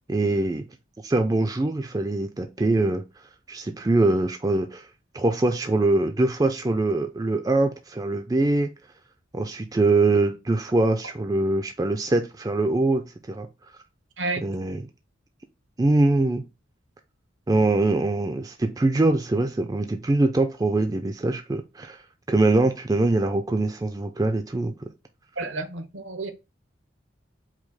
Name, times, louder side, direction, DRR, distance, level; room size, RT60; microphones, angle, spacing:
voice 1, 0.1-0.6 1.0-3.0 3.5-4.8 5.1-8.7 9.3-13.5 14.4-14.8 15.8-16.4 17.5-22.0 22.3-24.7, right 2 dB, 20° right, 0.4 m, -23 dB
voice 2, 25.4-26.3, right 2 dB, 80° right, 0.8 m, -30 dB
4.9 x 2.0 x 4.0 m
head